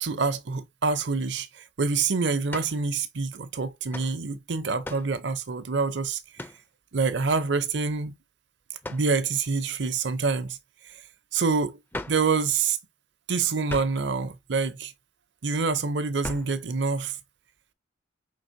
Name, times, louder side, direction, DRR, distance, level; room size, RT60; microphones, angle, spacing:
voice 1, 0.0-6.2 6.9-8.2 8.9-10.6 11.3-11.8 12.1-12.8 13.3-14.9 15.4-17.1, right 4 dB, 60° right, 0.6 m, -26 dB
sound 1, 2.5-2.8 3.9-4.1 4.8-5.1 6.4-6.6 8.8-9.1 11.9-12.3 13.7-14.1 16.2-16.6, left 1 dB, 10° left, 0.4 m, -37 dB
5.3 x 3.3 x 2.6 m
head